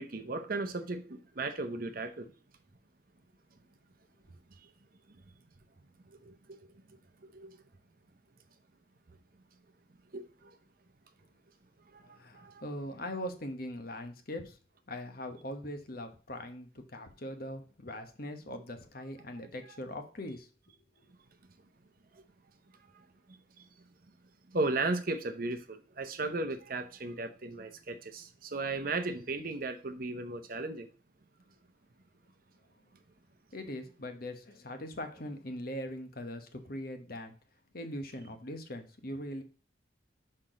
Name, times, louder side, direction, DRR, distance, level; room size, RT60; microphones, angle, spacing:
voice 1, 0.0-2.3 7.3-7.5 10.1-10.3 12.3-12.6 24.5-30.9, right 2 dB, 45° right, 0.7 m, -35 dB
voice 2, 12.0-14.6 14.9-20.5 33.5-37.3 37.7-39.4, left 1 dB, 50° left, 1.0 m, -41 dB
6.0 x 4.4 x 5.0 m
head